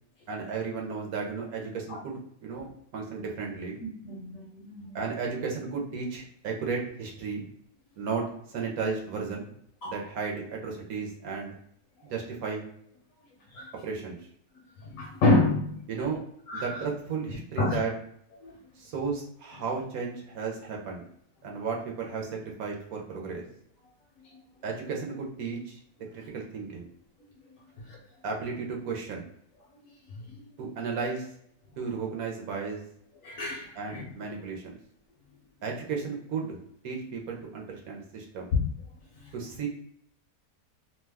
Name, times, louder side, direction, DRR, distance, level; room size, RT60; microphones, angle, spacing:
voice 1, 0.3-3.8 4.9-7.5 8.0-9.5 9.8-11.5 12.1-12.6 13.8-14.2 15.9-16.2 16.5-17.9 18.8-21.0 21.4-23.4 24.6-25.8 26.1-26.9 28.2-29.3 30.6-31.3 31.8-32.8 33.7-34.8 35.6-36.6 36.8-38.5 39.3-39.7, right 5 dB, 65° right, 0 dB, 1.0 m, -34 dB
voice 2, 3.8-5.0 9.8-10.0 13.5-13.7 14.8-15.8 16.5-16.8 17.6-17.8 18.4-18.5 27.8-28.0 30.1-30.3 33.2-34.1 38.5-38.6 39.2-39.3, left 2 dB, 70° left, 0 dB, 0.8 m, -28 dB
2.8 x 2.2 x 3.3 m, 0.67 s
omnidirectional pair, 1.8 m